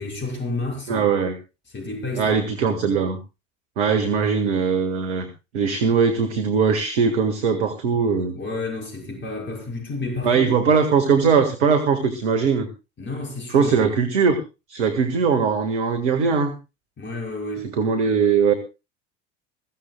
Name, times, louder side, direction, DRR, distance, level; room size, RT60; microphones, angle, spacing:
voice 1, 0.0-1.1 1.7-2.4 2.7-2.9 8.4-10.7 13.0-13.8 17.0-17.7, left 2 dB, 30° left, 5.9 m, -30 dB
voice 2, 0.9-1.3 2.1-3.2 3.8-5.3 5.5-8.4 10.2-12.7 13.5-14.4 14.7-16.5 17.7-18.5, right 6 dB, 65° right, 1.8 m, -20 dB
21.5 x 15.0 x 2.3 m
figure-of-eight pair, 70°, 37 cm